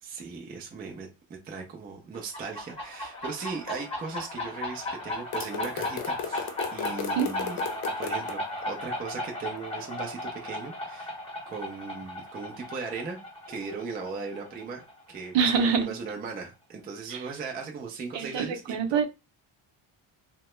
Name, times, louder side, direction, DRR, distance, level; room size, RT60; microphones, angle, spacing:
voice 1, 0.0-7.6 8.0-8.4 8.7-11.2 11.5-13.2 13.5-19.0, right 5 dB, 20° right, 0.3 m, -38 dB
sound 1, 2.1-15.5, left 1 dB, 10° left, 0.7 m, -36 dB
sound 2, 5.3-8.3, left 8 dB, 90° left, 0.7 m, -35 dB
voice 2, 15.3-15.9 17.1-17.2 18.1-19.1, right 6 dB, 60° right, 0.7 m, -25 dB
2.8 x 2.1 x 3.0 m
cardioid pair, 170°, 49 cm